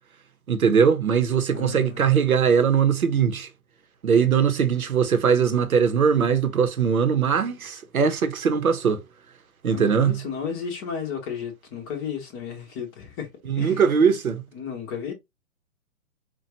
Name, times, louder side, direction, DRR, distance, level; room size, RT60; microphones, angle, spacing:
voice 1, 0.5-3.5 4.0-9.0 9.6-10.2 13.5-14.4, right 6 dB, 70° right, 1.0 m, -21 dB
voice 2, 1.5-2.0 9.7-13.3 13.6-13.8 14.5-15.1, left 7 dB, 15° left, 0.7 m, -33 dB
4.5 x 2.4 x 2.8 m
figure-of-eight pair, 125°, 44 cm